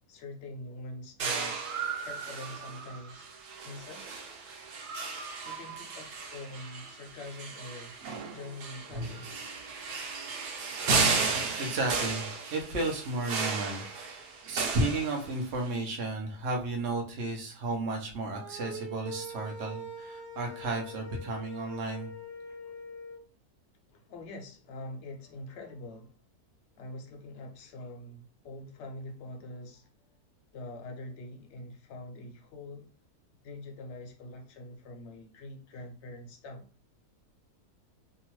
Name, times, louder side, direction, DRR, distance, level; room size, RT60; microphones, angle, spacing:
voice 1, 0.1-1.6 2.0-3.3 3.6-4.2 4.5-4.7 5.4-8.0 8.3-9.4 22.5-22.6 23.9-26.1 26.8-29.9 30.5-32.9 33.4-36.7, left 2 dB, 65° left, 0.7 m, -44 dB
sound 1, 1.2-15.7, right 4 dB, 75° right, 1.2 m, -34 dB
voice 2, 11.6-13.8 14.5-22.1, right 2 dB, 55° right, 0.8 m, -33 dB
sound 2, 18.3-23.2, equal, 40° right, 1.2 m, -43 dB
2.8 x 2.2 x 3.0 m
omnidirectional pair, 1.6 m